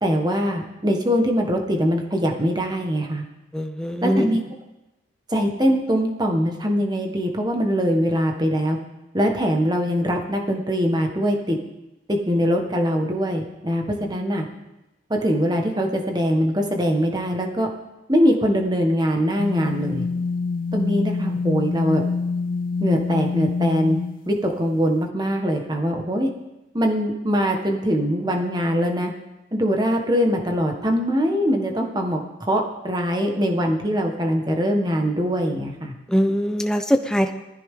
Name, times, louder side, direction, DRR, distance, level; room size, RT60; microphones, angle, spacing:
voice 1, 0.0-3.2 4.0-4.4 5.3-8.8 9.1-11.6 12.1-14.4 15.1-17.7 18.1-20.0 20.7-22.0 22.8-24.0 24.3-26.3 26.7-29.1 29.5-35.9, equal, 20° right, 2 dB, 1.6 m, -22 dB
voice 2, 3.5-4.4 36.1-37.3, equal, 5° left, 6 dB, 0.8 m, -22 dB
sound 1, 19.4-24.7, left 4 dB, 50° left, 0.4 m, -26 dB
19.0 x 14.5 x 3.8 m, 0.99 s
head